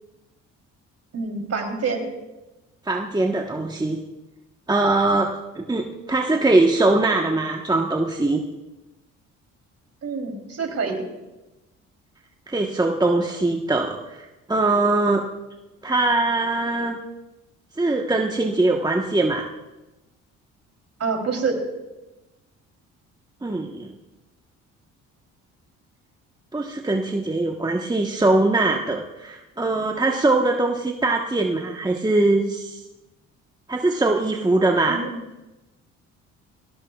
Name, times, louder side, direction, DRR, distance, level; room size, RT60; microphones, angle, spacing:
voice 1, 1.1-2.1 10.0-11.0 21.0-21.6 34.9-35.2, right 4 dB, 50° right, 3 dB, 3.5 m, -26 dB
voice 2, 2.9-4.0 4.7-8.4 12.5-15.3 15.8-17.0 17.8-19.5 23.4-23.9 26.5-32.8 33.7-35.0, right 2 dB, 10° right, 1 dB, 1.3 m, -22 dB
20.5 x 17.0 x 2.4 m, 1.0 s
supercardioid pair, 60°, 33 cm